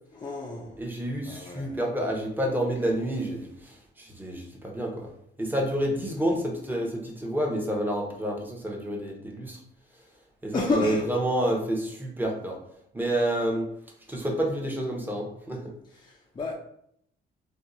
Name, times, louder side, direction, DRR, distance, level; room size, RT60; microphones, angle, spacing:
voice 1, 0.1-0.8 1.2-1.8 5.9-6.3 10.5-11.1 15.9-16.5, left 3 dB, 20° left, 0.4 m, -32 dB
voice 2, 0.8-5.1 5.4-9.6 10.4-12.6 12.9-13.7 14.1-15.6, right 1 dB, 10° right, 0.9 m, -29 dB
2.8 x 2.3 x 3.7 m
cardioid pair, 90°, 20 cm